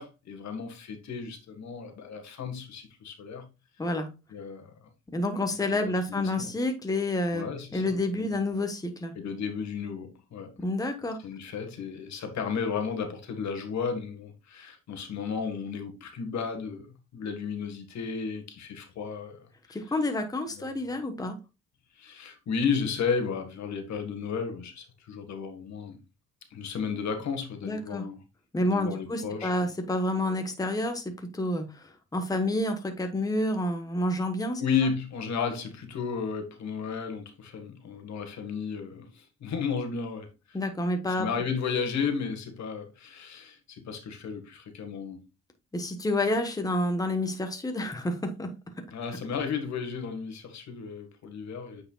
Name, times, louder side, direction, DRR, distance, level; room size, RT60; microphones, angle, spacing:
voice 1, 0.0-3.4 4.3-4.7 5.7-6.5 7.3-8.3 9.1-10.5 11.2-16.9 17.1-19.8 20.5-20.7 22.0-26.0 26.5-28.2 28.6-29.5 34.6-40.6 41.2-45.3 48.9-51.8, left 6 dB, 65° left, 1.6 m, -33 dB
voice 2, 5.1-7.5 7.7-9.1 10.6-11.2 19.7-21.4 27.6-28.0 28.5-34.6 40.5-41.3 45.7-48.5, left 1 dB, 10° left, 1.1 m, -29 dB
8.5 x 4.8 x 2.3 m
cardioid pair, 90°, 30 cm